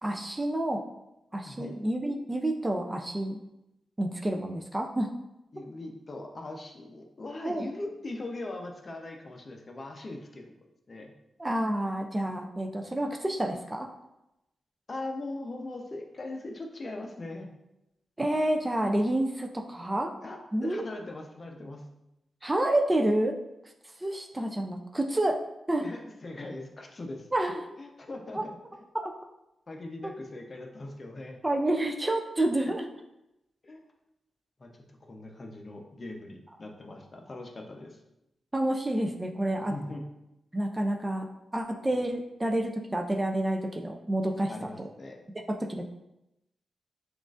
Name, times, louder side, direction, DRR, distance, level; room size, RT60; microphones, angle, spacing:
voice 1, 0.0-0.8 1.3-3.4 4.0-5.1 7.4-7.7 11.4-13.9 18.2-20.1 20.5-20.8 22.4-23.4 24.0-25.4 25.7-25.9 27.3-27.6 28.3-28.4 29.0-29.1 30.0-30.1 31.4-32.9 38.5-39.7 40.5-44.5 44.8-44.9 45.5-45.9, right 1 dB, 15° right, 2 dB, 0.3 m, -29 dB
voice 2, 5.5-10.5 10.9-11.1 14.9-17.5 20.2-21.8 25.8-27.3 27.8-28.8 29.7-31.4 33.6-33.9 34.6-34.7 35.0-38.0 39.7-40.0 41.9-42.0 44.5-45.2, left 2 dB, 40° left, 2 dB, 0.6 m, -40 dB
5.9 x 2.4 x 2.4 m, 0.88 s
cardioid pair, 95°, 0 cm